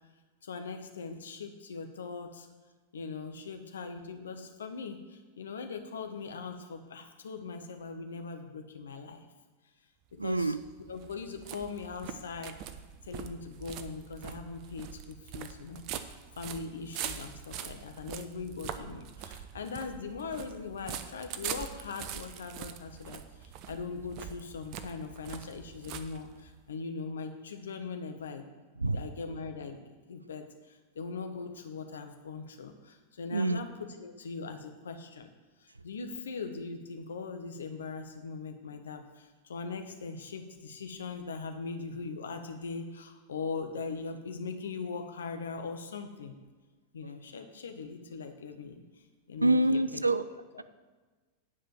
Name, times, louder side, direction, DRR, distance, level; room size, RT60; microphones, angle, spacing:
voice 1, 0.4-2.5 2.9-9.2 10.2-12.6 13.1-16.1 16.4-28.5 28.9-29.8 30.1-35.3 35.6-46.4 46.9-48.8 49.3-50.0 50.3-50.6, left 4 dB, 65° left, 6 dB, 1.1 m, -40 dB
sound 1, 10.1-26.6, right 9 dB, 40° right, 0.7 m, -43 dB
voice 2, 10.2-10.6 28.8-29.0 33.3-33.6 49.4-50.2, right 2 dB, 85° right, 14 dB, 0.4 m, -26 dB
9.8 x 5.0 x 7.4 m, 1.3 s
figure-of-eight pair, 90°, 0 cm